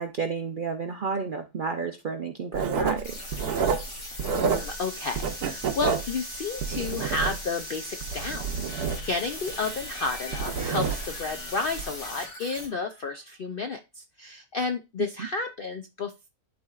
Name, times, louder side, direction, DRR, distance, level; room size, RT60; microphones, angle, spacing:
voice 1, 0.0-3.2, right 5 dB, 60° right, 6 dB, 0.5 m, -31 dB
Writing, 2.5-4.9 5.1-7.6 8.0-11.3 11.7-11.9, right 6 dB, 85° right, 1.4 m, -29 dB
sound 1, 3.0-12.7, left 1 dB, 50° left, 2.0 m, -39 dB
voice 2, 4.3-8.5 8.8-16.3, left 4 dB, 65° left, 7 dB, 0.5 m, -32 dB
Laughter, 9.9-13.5, left 1 dB, 85° left, 3.4 m, -49 dB
11.5 x 4.2 x 2.3 m, 0.25 s
omnidirectional pair, 1.6 m